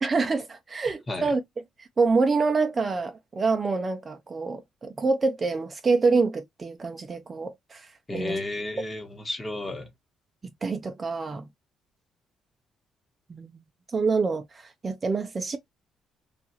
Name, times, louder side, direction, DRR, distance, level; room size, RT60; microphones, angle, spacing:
voice 1, 0.0-1.4 1.8-8.4 10.6-11.4 13.3-13.5 13.9-15.6, right 4 dB, 30° right, 0.4 m, -26 dB
voice 2, 8.1-9.9, left 2 dB, 20° left, 1.0 m, -32 dB
2.8 x 2.3 x 2.7 m
cardioid pair, 115°, 0 cm